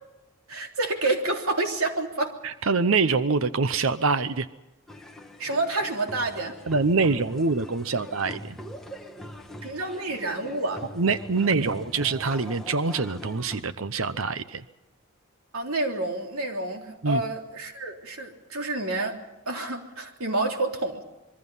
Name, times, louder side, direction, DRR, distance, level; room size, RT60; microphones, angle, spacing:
voice 1, 0.5-2.4 5.4-6.5 9.6-10.8 15.5-19.2 19.5-21.0, right 2 dB, 90° right, 3 dB, 3.4 m, -28 dB
voice 2, 2.4-4.5 6.7-8.6 11.0-14.6 17.0-17.2, right 4 dB, 75° right, 13 dB, 0.8 m, -25 dB
sound 1, 4.9-13.6, equal, ahead, 1.5 m, -42 dB
26.0 x 22.5 x 5.6 m, 1.0 s
head